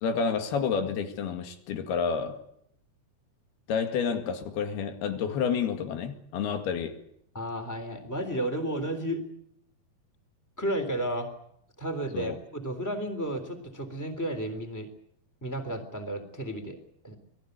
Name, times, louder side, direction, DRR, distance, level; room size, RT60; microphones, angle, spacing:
voice 1, 0.0-2.4 3.7-7.0 12.1-12.4, left 6 dB, 90° left, 4.1 m, -29 dB
voice 2, 7.3-9.2 10.6-11.3 11.8-14.9 15.4-16.8 17.0-17.2, right 1 dB, 5° left, 2.9 m, -32 dB
27.5 x 18.5 x 8.2 m
omnidirectional pair, 4.3 m